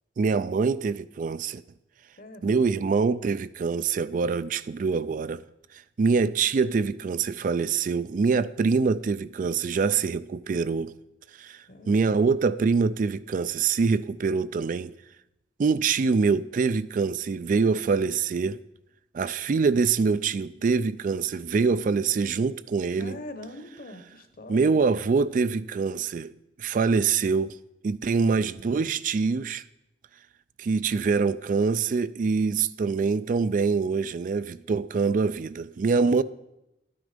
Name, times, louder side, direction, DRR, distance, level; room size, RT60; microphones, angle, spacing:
voice 1, 0.2-1.6 2.4-5.4 6.0-10.9 11.4-14.9 15.6-18.6 19.1-23.2 24.5-26.3 26.6-27.6 27.8-29.6 30.6-36.2, right 5 dB, 50° right, 0.3 m, -24 dB
voice 2, 2.2-2.6 11.7-12.2 23.0-24.8, left 1 dB, 55° left, 1.1 m, -42 dB
12.0 x 9.5 x 5.1 m
head